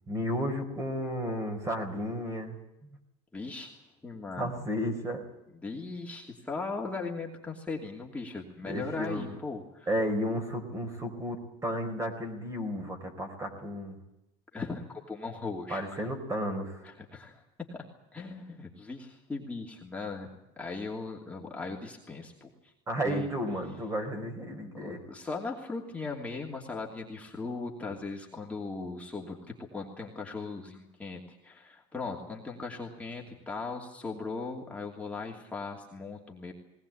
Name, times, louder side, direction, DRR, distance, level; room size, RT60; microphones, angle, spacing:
voice 1, 0.1-2.6 4.4-5.2 8.6-9.4 9.9-14.0 15.7-16.8 22.9-25.0, equal, 20° right, 6 dB, 4.2 m, -33 dB
voice 2, 3.3-3.8 4.0-4.6 5.6-9.9 14.5-16.1 16.8-17.4 17.7-17.8 18.1-20.3 20.6-22.7 23.0-23.3 24.7-29.4 29.7-36.5, left 3 dB, 10° left, -1 dB, 2.8 m, -38 dB
20.0 x 19.5 x 8.6 m, 0.94 s
cardioid pair, 140°, 15 cm